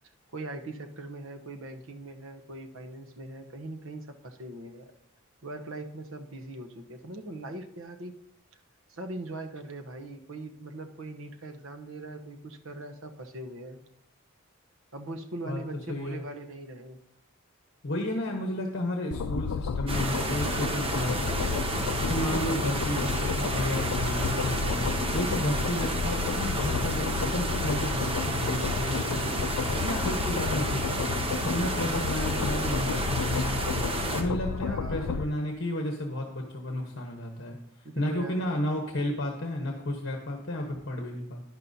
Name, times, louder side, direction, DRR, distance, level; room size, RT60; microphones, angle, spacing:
voice 1, 0.3-4.9 5.4-8.2 8.9-13.8 14.9-17.0 34.5-35.3 37.8-38.5, right 2 dB, 65° right, 6 dB, 0.9 m, -41 dB
voice 2, 15.9-16.2 17.8-37.6 37.9-41.4, left 1 dB, 55° left, 1 dB, 1.1 m, -32 dB
sound 1, 19.1-35.2, left 5 dB, 85° left, 0.4 m, -31 dB
sound 2, 19.9-34.2, right 2 dB, 25° right, 1.1 m, -31 dB
11.5 x 10.5 x 2.7 m, 0.78 s
head